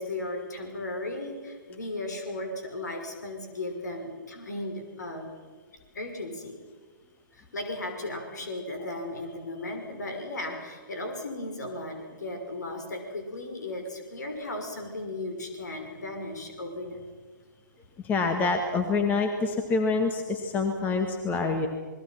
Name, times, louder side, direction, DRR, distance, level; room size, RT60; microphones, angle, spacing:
voice 1, 0.0-5.3 5.9-6.6 7.5-17.0, left 2 dB, 60° left, 5 dB, 6.1 m, -36 dB
voice 2, 18.0-21.7, left 4 dB, 15° left, 5 dB, 1.8 m, -26 dB
28.5 x 21.5 x 6.0 m, 1.4 s
figure-of-eight pair, 125°, 10 cm